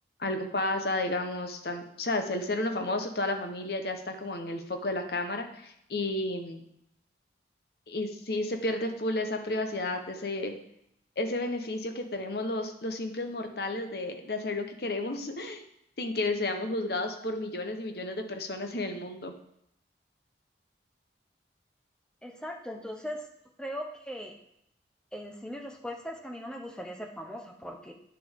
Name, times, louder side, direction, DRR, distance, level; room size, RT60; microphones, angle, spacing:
voice 1, 0.2-6.6 7.9-10.5 11.2-15.6 16.0-19.3, left 2 dB, 60° left, 5 dB, 0.9 m, -32 dB
voice 2, 22.2-23.3 23.6-24.3 25.1-27.9, equal, 5° left, 2 dB, 0.8 m, -39 dB
9.4 x 6.3 x 3.6 m, 0.76 s
head